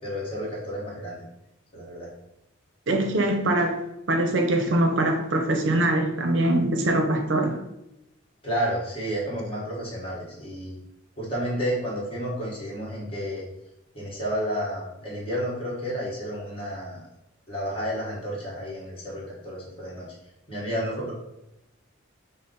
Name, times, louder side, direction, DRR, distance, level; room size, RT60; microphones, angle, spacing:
voice 1, 0.0-1.2 1.7-2.1 8.4-10.8 11.2-13.4 13.9-17.0 17.5-20.1 20.5-21.1, equal, 25° left, -5 dB, 1.3 m, -31 dB
voice 2, 2.9-3.8 4.1-7.6, right 1 dB, 65° right, 4 dB, 0.6 m, -23 dB
5.4 x 2.1 x 3.9 m, 0.87 s
head